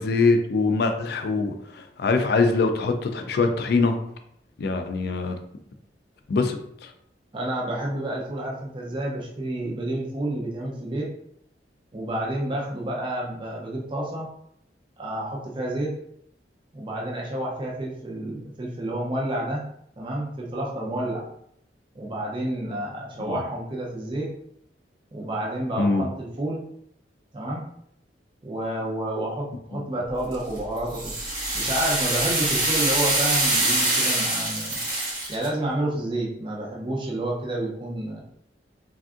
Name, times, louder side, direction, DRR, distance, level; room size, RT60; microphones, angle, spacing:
voice 1, 0.0-3.9 4.6-5.4 6.3-6.9 23.3-23.4 25.8-26.1, left 3 dB, 60° left, 6 dB, 0.4 m, -23 dB
voice 2, 7.3-11.1 11.9-14.3 15.0-15.9 16.7-19.6 20.0-21.2 21.9-24.3 25.1-26.6 27.3-27.6 28.4-31.1 31.5-34.8 35.3-38.2, right 1 dB, 30° right, -3 dB, 0.5 m, -29 dB
sound 1, 30.3-35.5, right 2 dB, 55° right, 1.4 m, -24 dB
3.5 x 2.5 x 2.4 m, 0.71 s
head